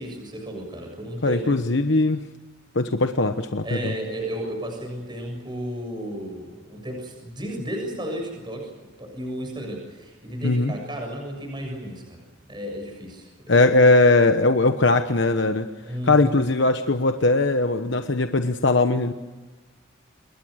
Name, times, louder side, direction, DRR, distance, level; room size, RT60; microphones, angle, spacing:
voice 1, 0.0-1.6 3.6-8.7 9.0-12.2 12.5-13.6 15.8-16.4, equal, 20° right, 3 dB, 7.1 m, -33 dB
voice 2, 1.2-2.2 2.7-3.9 10.4-10.7 13.5-15.7 16.0-19.1, left 2 dB, 60° left, 8 dB, 1.1 m, -20 dB
28.0 x 22.5 x 6.5 m, 1.3 s
head